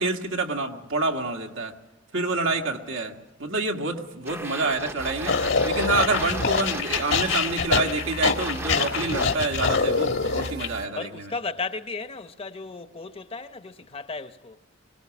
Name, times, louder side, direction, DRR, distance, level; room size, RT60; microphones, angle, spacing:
voice 1, 0.0-1.8 2.1-3.1 3.4-11.3, right 2 dB, 90° right, 2.0 m, -27 dB
voice 2, 2.3-3.1 3.4-3.5 10.9-14.6, left 4 dB, 30° left, 0.8 m, -36 dB
sound 1, 4.3-9.4, right 2 dB, 15° right, 0.7 m, -37 dB
sound 2, 5.0-10.9, right 2 dB, 55° right, 1.3 m, -40 dB
sound 3, 5.3-10.7, left 5 dB, 75° left, 1.6 m, -25 dB
23.5 x 18.5 x 6.1 m
head